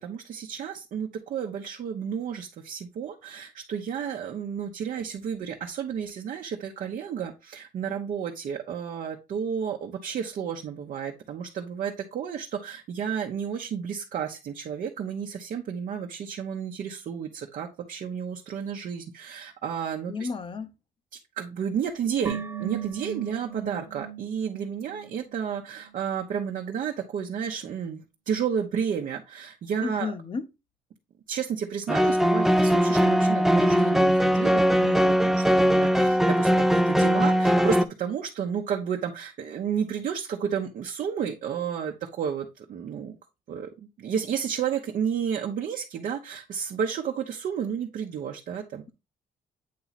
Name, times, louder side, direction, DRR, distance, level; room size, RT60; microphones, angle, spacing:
voice 1, 0.0-20.3 21.4-30.1 31.3-43.1 43.5-48.8, right 7 dB, 65° right, 0.8 m, -32 dB
voice 2, 20.1-20.7 29.8-30.4, left 4 dB, 35° left, 0.7 m, -32 dB
sound 1, 22.3-25.6 25.8-25.9, right 8 dB, 25° right, 1.0 m, -37 dB
sound 2, 31.9-37.8, equal, ahead, 0.4 m, -20 dB
8.4 x 2.9 x 4.0 m
cardioid pair, 110°, 15 cm